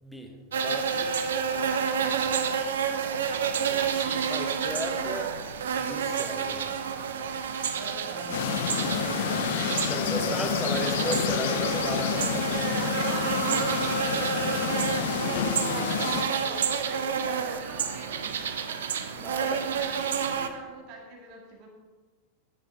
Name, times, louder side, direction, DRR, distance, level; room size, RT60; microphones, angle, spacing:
voice 1, 0.0-1.3 2.2-2.4 3.0-5.3 5.8-6.7 9.9-12.7 15.1-15.3 19.1-19.7, equal, ahead, 2 dB, 1.7 m, -36 dB
sound 1, 0.5-20.5, right 6 dB, 65° right, 0.8 m, -29 dB
voice 2, 7.2-10.8 11.9-18.3 18.7-21.7, right 3 dB, 40° right, 0 dB, 2.1 m, -43 dB
sound 2, 8.3-16.2, left 9 dB, 55° left, 0.7 m, -29 dB
13.0 x 9.7 x 3.7 m, 1.3 s
figure-of-eight pair, 90°, 0 cm